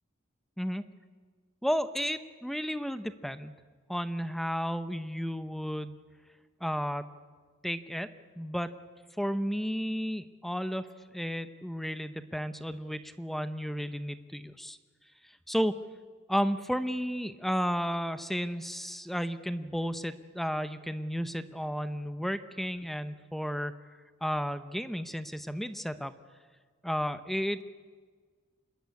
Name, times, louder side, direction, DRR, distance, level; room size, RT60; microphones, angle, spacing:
voice 1, 1.6-3.5 3.9-6.0 6.6-7.1 7.6-8.1 8.4-8.7 9.2-10.9 11.1-14.8 15.2-15.8 16.3-23.7 24.2-26.1 26.8-27.6, equal, ahead, 11 dB, 0.7 m, -33 dB
27.0 x 20.5 x 8.3 m, 1.5 s
head